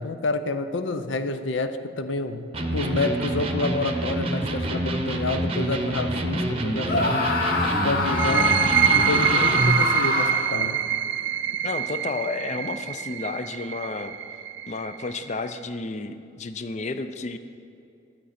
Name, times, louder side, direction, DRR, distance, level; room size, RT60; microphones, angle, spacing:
voice 1, 0.0-7.3 7.8-8.5 8.9-10.8, left 2 dB, 85° left, 9 dB, 0.6 m, -29 dB
Electric guitar, 2.5-9.8, right 1 dB, 30° right, 0.7 m, -27 dB
Screaming, 6.8-10.6, left 3 dB, 55° left, 0.9 m, -25 dB
sound 1, 8.1-15.5, right 9 dB, 70° right, 0.4 m, -25 dB
voice 2, 11.6-14.1 14.7-17.4, left 3 dB, 40° left, 10 dB, 0.5 m, -31 dB
12.0 x 8.9 x 4.3 m, 2.6 s
head